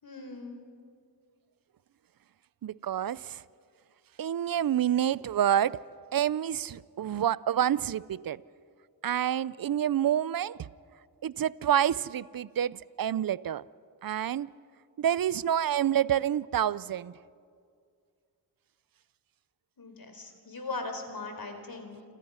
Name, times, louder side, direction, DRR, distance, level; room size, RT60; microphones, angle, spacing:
voice 1, 0.0-0.6 19.8-22.0, left 3 dB, 55° left, 4.4 m, -39 dB
voice 2, 2.6-3.4 4.2-5.8 6.1-8.4 9.0-10.7 11.2-13.6 14.0-14.5 15.0-17.1, right 10 dB, 55° right, 0.6 m, -28 dB
28.5 x 26.5 x 5.7 m
cardioid pair, 60°, 41 cm